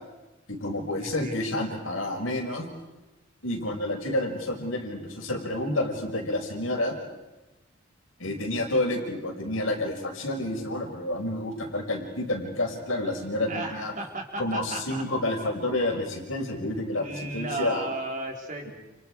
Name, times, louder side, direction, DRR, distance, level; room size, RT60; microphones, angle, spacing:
voice 1, 0.5-2.6 3.4-7.0 8.2-13.9 14.4-17.8, left 1 dB, 80° left, 2 dB, 5.5 m, -29 dB
voice 2, 1.0-1.4 13.5-15.1 16.7-18.7, right 2 dB, 40° right, 1 dB, 4.4 m, -35 dB
30.0 x 29.5 x 4.8 m, 1.1 s
head